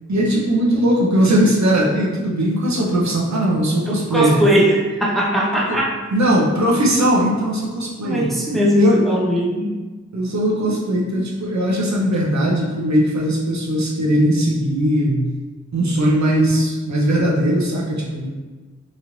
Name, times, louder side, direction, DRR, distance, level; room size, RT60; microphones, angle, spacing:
voice 1, 0.1-4.4 5.7-5.8 6.1-9.0 10.1-15.3 15.7-18.3, right 1 dB, 70° right, -3 dB, 0.7 m, -19 dB
voice 2, 3.9-5.9 8.0-9.8, equal, ahead, -3 dB, 0.5 m, -19 dB
3.0 x 2.4 x 2.9 m, 1.3 s
cardioid pair, 50°, 29 cm